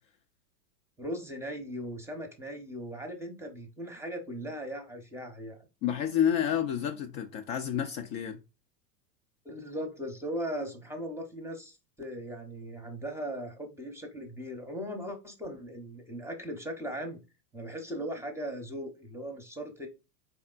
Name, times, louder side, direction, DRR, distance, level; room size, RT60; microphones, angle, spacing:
voice 1, 1.0-5.6 9.4-17.2 17.5-19.9, equal, 5° right, 0.8 m, -38 dB
voice 2, 5.8-8.4, left 9 dB, 40° left, 0.5 m, -29 dB
4.4 x 3.5 x 2.4 m
hypercardioid pair, 115°, 50 cm